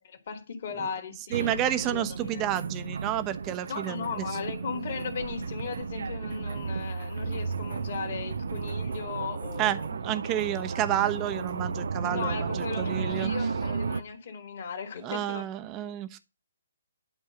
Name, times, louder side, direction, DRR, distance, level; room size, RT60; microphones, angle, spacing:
voice 1, 0.3-2.5 3.7-9.9 12.0-15.4, left 6 dB, 50° left, 2.4 m, -37 dB
voice 2, 1.3-4.2 9.6-13.3 15.0-16.2, right 12 dB, 25° right, 1.0 m, -30 dB
sound 1, 1.3-14.0, right 5 dB, 60° right, 0.7 m, -33 dB
11.5 x 4.7 x 8.0 m
figure-of-eight pair, 130°, 0 cm